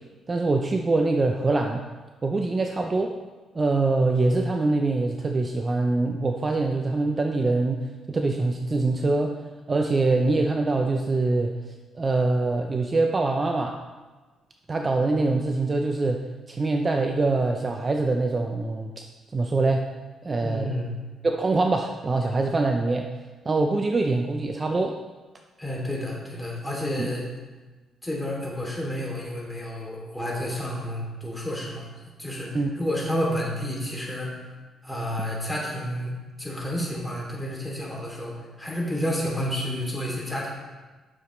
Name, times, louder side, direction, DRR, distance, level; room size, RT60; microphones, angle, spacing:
voice 1, 0.3-1.8 2.2-3.1 3.5-9.3 9.7-13.8 14.7-16.2 16.5-19.0 19.3-19.9 20.2-20.7 21.2-23.1 23.4-24.9 27.0-27.1 32.5-32.7, right 3 dB, 30° right, 3 dB, 0.6 m, -24 dB
voice 2, 20.4-21.0 25.6-27.3 28.0-31.9 32.2-34.4 34.8-40.5, equal, 5° left, -4 dB, 2.8 m, -30 dB
9.6 x 6.8 x 3.2 m, 1.3 s
cardioid pair, 90°, 0 cm